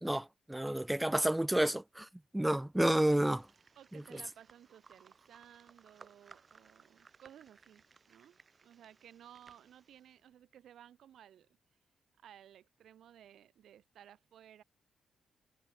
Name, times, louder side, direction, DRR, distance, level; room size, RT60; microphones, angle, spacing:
voice 1, 0.0-2.1 2.3-3.5 3.9-4.2, right 1 dB, 10° right, 0.5 m, -30 dB
sound 1, 2.9-10.2, right 5 dB, 45° right, 3.5 m, -62 dB
voice 2, 3.8-8.4 8.6-11.5 12.2-14.6, right 10 dB, 75° right, 2.4 m, -57 dB
supercardioid pair, 60°, 0 cm